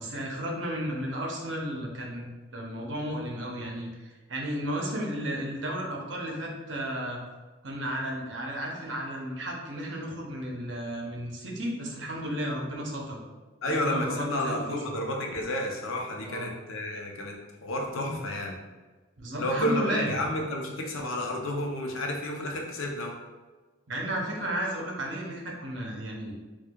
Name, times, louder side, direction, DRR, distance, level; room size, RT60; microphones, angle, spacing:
voice 1, 0.0-2.2 2.5-7.2 7.6-13.2 13.7-15.0 16.2-16.5 18.0-18.1 19.2-20.2 23.9-26.3, equal, 65° right, -1 dB, 0.7 m, -33 dB
voice 2, 13.6-17.3 17.6-18.5 19.4-23.1, left 1 dB, 85° left, 1 dB, 0.6 m, -31 dB
4.4 x 2.3 x 2.3 m, 1.3 s
head